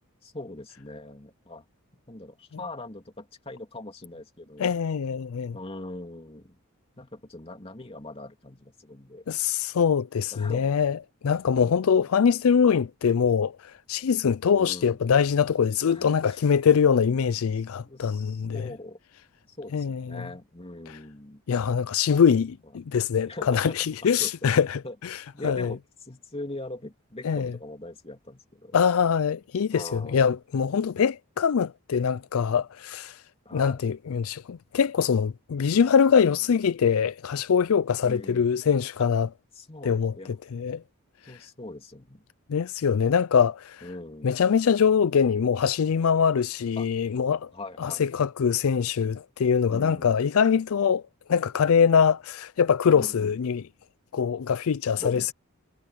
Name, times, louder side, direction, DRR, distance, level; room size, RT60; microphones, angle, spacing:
voice 1, 0.2-1.6 2.1-4.7 5.5-6.6 7.0-9.2 10.3-10.7 11.5-12.0 14.5-15.0 15.9-16.4 17.7-19.0 19.5-21.4 23.3-23.9 24.2-24.9 25.3-28.8 29.7-30.3 33.4-33.9 36.2-36.4 38.0-38.5 39.0-39.1 39.5-40.7 41.2-42.3 43.8-44.3 46.8-46.9 47.5-48.0 49.7-50.2 52.9-53.4 54.9-55.3, left 2 dB, 25° left, 3.0 m, -41 dB
voice 2, 4.6-5.6 9.3-11.0 11.2-18.7 19.7-20.2 20.9-21.0 21.5-25.7 27.2-27.5 28.7-33.2 33.5-39.3 39.8-40.8 42.5-43.9 44.2-47.5 47.8-51.0 51.3-53.6 54.1-55.3, left 7 dB, 70° left, 0.4 m, -23 dB
head